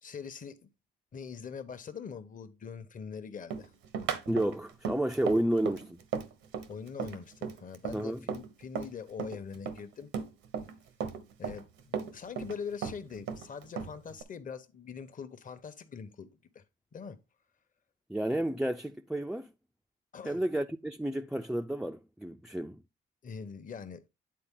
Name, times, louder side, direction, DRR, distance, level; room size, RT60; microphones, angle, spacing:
voice 1, 0.0-0.7 1.1-3.7 6.7-10.1 11.4-16.3 16.5-16.6 16.9-17.2 20.1-20.4 23.2-24.1, left 6 dB, 40° left, 1.0 m, -43 dB
Run, 3.5-8.9 9.2-10.8 11.0-12.6 12.8-14.2, right 6 dB, 85° right, 1.0 m, -36 dB
voice 2, 4.3-6.0 7.9-8.2 18.1-19.5 20.2-22.8, right 1 dB, 5° right, 0.4 m, -31 dB
9.6 x 3.9 x 3.7 m
cardioid pair, 90°, 20 cm